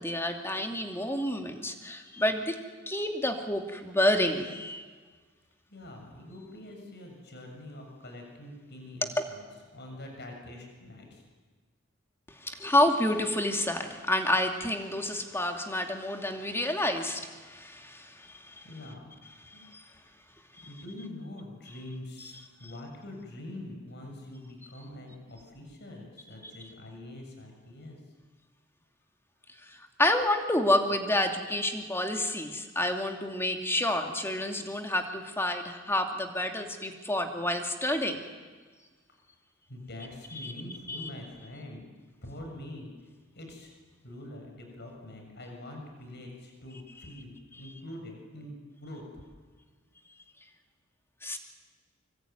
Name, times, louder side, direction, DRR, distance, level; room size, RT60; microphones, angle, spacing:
voice 1, 0.0-2.6 2.9-4.9 9.2-9.3 12.3-18.6 19.5-19.8 29.6-38.2 40.4-40.5 40.9-41.1 51.2-51.4, left 1 dB, 10° left, 4 dB, 2.6 m, -29 dB
voice 2, 5.7-9.5 9.7-11.2 18.3-20.1 20.6-28.1 39.7-41.9 42.2-43.7 44.0-49.0, left 1 dB, 55° left, 2 dB, 7.1 m, -45 dB
25.0 x 24.5 x 9.4 m, 1.4 s
head